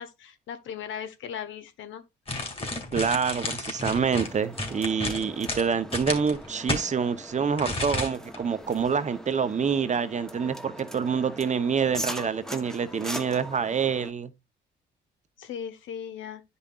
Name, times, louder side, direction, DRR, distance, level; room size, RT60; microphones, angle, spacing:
voice 1, 0.0-2.0 15.4-16.4, left 8 dB, 75° left, 1.3 m, -38 dB
sound 1, 2.3-6.9 7.6-8.4 8.7-8.8, left 2 dB, 30° left, 2.6 m, -32 dB
voice 2, 2.9-14.3, right 6 dB, 35° right, 0.8 m, -27 dB
sound 2, 3.9-14.1, equal, ahead, 1.0 m, -41 dB
10.0 x 5.4 x 2.4 m
cardioid pair, 90°, 20 cm